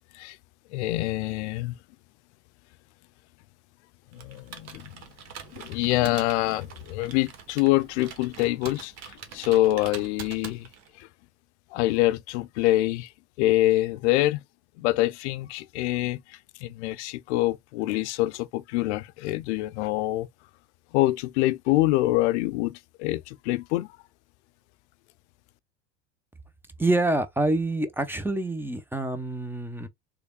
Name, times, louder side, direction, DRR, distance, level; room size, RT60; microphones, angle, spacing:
voice 1, 0.7-1.7 4.1-4.9 5.5-8.9 9.3-10.7 11.7-13.1 13.4-14.4 14.8-16.2 16.6-20.3 20.9-23.9, left 17 dB, 80° left, 0.5 m, -25 dB
Computer keyboard, 4.1-11.0, right 7 dB, 50° right, 1.2 m, -44 dB
voice 2, 26.8-29.9, right 2 dB, 5° right, 0.7 m, -26 dB
3.5 x 3.3 x 2.2 m
hypercardioid pair, 90°, 34 cm